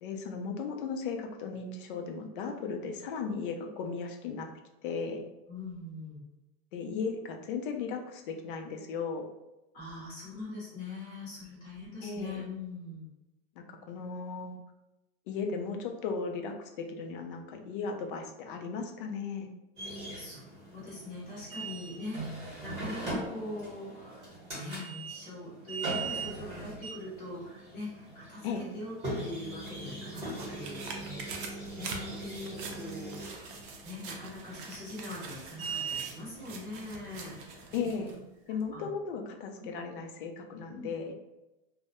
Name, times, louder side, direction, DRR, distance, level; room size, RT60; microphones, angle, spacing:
voice 1, 0.0-4.5 4.8-5.2 6.7-9.3 12.0-12.4 13.6-14.6 15.3-19.5 28.4-28.7 37.7-38.2 38.5-41.1, left 5 dB, 55° left, 4 dB, 0.4 m, -36 dB
voice 2, 5.5-6.2 9.7-13.1 20.1-31.5 31.8-38.0 38.5-38.8 39.6-39.7 40.7-40.9, left 2 dB, 25° left, -7 dB, 0.7 m, -43 dB
sound 1, 19.8-38.1, right 3 dB, 20° right, 0.9 m, -41 dB
sound 2, 29.4-38.2 38.6-38.7, right 4 dB, 55° right, 0.5 m, -45 dB
2.2 x 2.0 x 2.8 m, 0.98 s
supercardioid pair, 170°, 31 cm